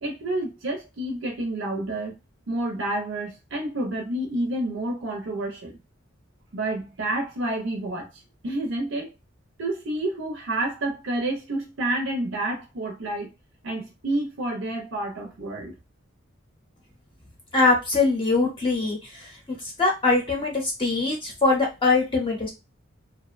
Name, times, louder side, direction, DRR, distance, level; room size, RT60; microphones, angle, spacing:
voice 1, 0.0-2.2 2.5-5.8 6.5-9.1 9.6-13.3 13.6-15.7, right 1 dB, 65° right, 0.6 m, -29 dB
voice 2, 17.5-19.3 19.8-22.5, left 3 dB, 25° left, 0.7 m, -22 dB
2.5 x 2.1 x 2.4 m
head